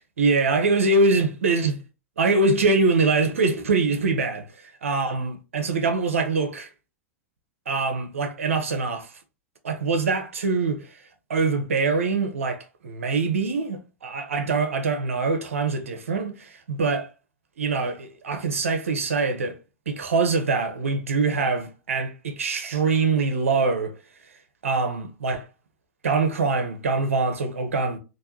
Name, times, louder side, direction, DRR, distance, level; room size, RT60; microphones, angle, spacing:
voice 1, 0.2-1.8 2.2-4.5 4.8-6.7 7.7-9.1 9.6-10.8 11.3-17.1 17.6-19.6 19.9-23.9 24.6-25.4 26.0-28.0, right 3 dB, 85° right, 0.8 m, -24 dB
3.4 x 2.6 x 2.9 m
hypercardioid pair, 100°, 7 cm